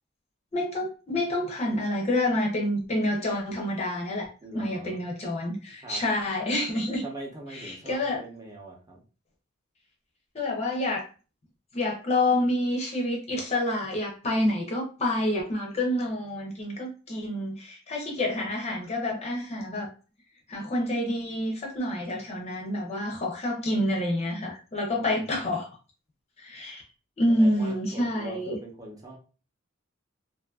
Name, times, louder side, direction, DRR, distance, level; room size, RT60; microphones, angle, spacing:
voice 1, 0.5-7.0 7.5-8.2 10.3-11.1 11.7-19.9 20.5-25.7 26.4-26.8 27.2-28.6, left 1 dB, 30° left, 0 dB, 0.5 m, -28 dB
voice 2, 4.4-5.0 5.8-6.0 7.0-9.0 24.9-25.6 27.3-29.2, right 2 dB, 20° right, -2 dB, 0.7 m, -43 dB
2.5 x 2.5 x 2.2 m, 0.35 s
head